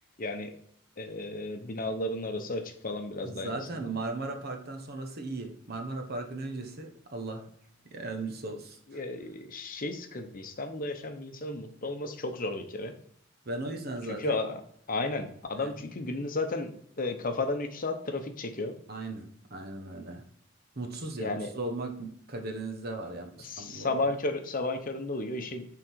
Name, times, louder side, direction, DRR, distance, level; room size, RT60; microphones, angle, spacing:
voice 1, 0.2-0.6 1.0-3.9 8.9-12.9 14.1-14.6 14.9-18.7 21.2-21.5 23.4-25.7, left 2 dB, 45° left, 6 dB, 0.9 m, -33 dB
voice 2, 3.2-7.4 7.9-9.0 13.4-14.4 15.6-15.8 18.9-20.2 20.8-24.1, right 2 dB, 50° right, 4 dB, 1.3 m, -37 dB
9.8 x 3.8 x 4.6 m, 0.63 s
head